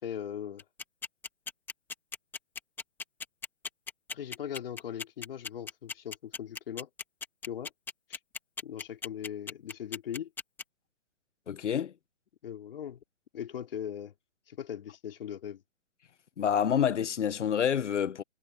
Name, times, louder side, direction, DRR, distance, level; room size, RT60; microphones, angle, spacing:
voice 1, 0.0-0.6 4.1-6.9 7.5-7.7 8.1-8.2 8.6-10.3 12.4-13.0 13.3-14.1 14.5-15.6, left 9 dB, 50° left, 3.8 m, -39 dB
sound 1, 0.6-10.6, left 5 dB, 5° left, 1.9 m, -37 dB
voice 2, 11.5-11.9 16.4-18.2, left 8 dB, 70° left, 1.2 m, -28 dB
hypercardioid pair, 160°, 37 cm